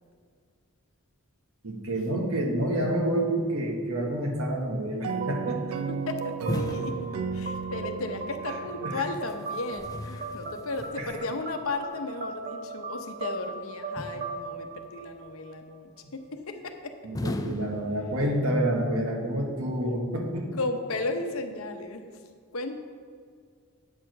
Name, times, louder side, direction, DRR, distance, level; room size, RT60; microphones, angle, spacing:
voice 1, 1.6-5.8 8.8-9.0 11.0-11.1 16.0-16.1 17.0-20.5, right 1 dB, 75° right, 1 dB, 1.4 m, -28 dB
sound 1, 5.0-9.7, right 6 dB, 90° right, 0.5 m, -35 dB
sound 2, 5.1-15.7, right 4 dB, 35° right, 0.7 m, -38 dB
voice 2, 6.1-16.9 20.6-22.2 22.5-22.8, left 2 dB, 75° left, 6 dB, 0.8 m, -35 dB
sound 3, 6.5-7.9 9.2-11.3 14.0-14.8 17.1-18.6, left 2 dB, 15° left, 0.4 m, -37 dB
8.7 x 4.6 x 6.5 m, 2.1 s
head